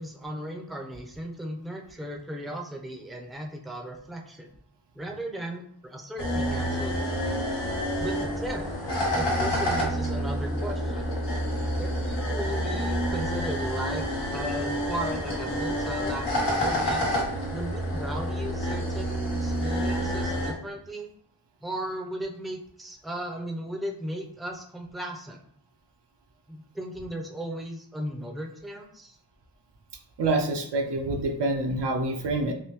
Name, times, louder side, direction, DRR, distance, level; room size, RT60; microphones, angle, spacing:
voice 1, 0.0-4.5 4.9-7.2 8.0-8.8 9.1-11.1 11.8-14.1 14.3-17.1 17.5-21.1 21.6-25.4 26.5-29.2, right 1 dB, ahead, 2 dB, 0.5 m, -36 dB
sound 1, 6.2-20.5, equal, 90° left, 1.1 m, -28 dB
voice 2, 30.2-32.5, right 2 dB, 80° right, 3 dB, 0.7 m, -26 dB
3.4 x 2.6 x 2.9 m, 0.66 s
cardioid pair, 50°, 41 cm